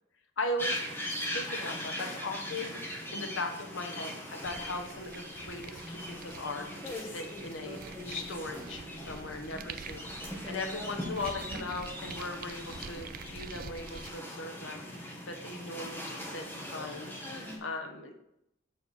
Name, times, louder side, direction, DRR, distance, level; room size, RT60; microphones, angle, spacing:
voice 1, 0.4-0.9 1.3-18.1, left 2 dB, 75° left, 4 dB, 1.1 m, -39 dB
sound 1, 0.6-17.6, left 1 dB, 10° left, 1.7 m, -40 dB
sound 2, 4.4-14.1, right 6 dB, 45° right, 0.5 m, -47 dB
6.8 x 6.7 x 5.5 m, 0.80 s
head